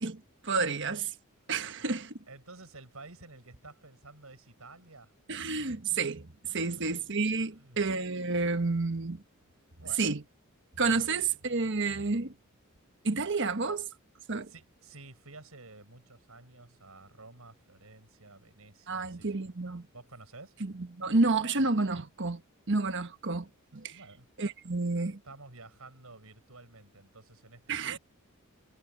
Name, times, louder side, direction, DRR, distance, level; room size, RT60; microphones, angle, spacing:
voice 1, 0.0-1.1 1.5-2.1 5.3-9.2 10.0-10.2 10.8-12.3 13.0-13.9 14.3-14.5 18.9-19.9 20.6-22.4 22.7-24.0 24.4-25.2 27.7-28.0, right 3 dB, 60° right, 1.4 m, -30 dB
voice 2, 1.6-2.0 2.3-5.1 6.6-6.7 7.4-7.8 9.8-10.2 11.0-11.1 14.5-19.5 19.9-20.5 23.9-24.3 25.2-28.0, right 3 dB, 80° right, 6.0 m, -51 dB
head